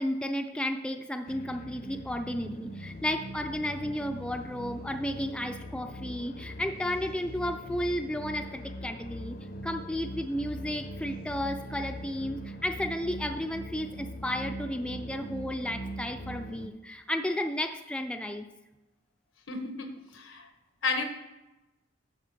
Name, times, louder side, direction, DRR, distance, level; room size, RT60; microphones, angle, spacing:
voice 1, 0.0-9.4 9.6-18.5, left 1 dB, 5° left, 6 dB, 0.4 m, -33 dB
sound 1, 1.3-16.7, equal, 50° left, 0.6 m, -41 dB
voice 2, 19.5-20.5 20.8-21.0, left 3 dB, 90° left, 6 dB, 1.2 m, -32 dB
10.5 x 3.6 x 6.6 m, 1.0 s
head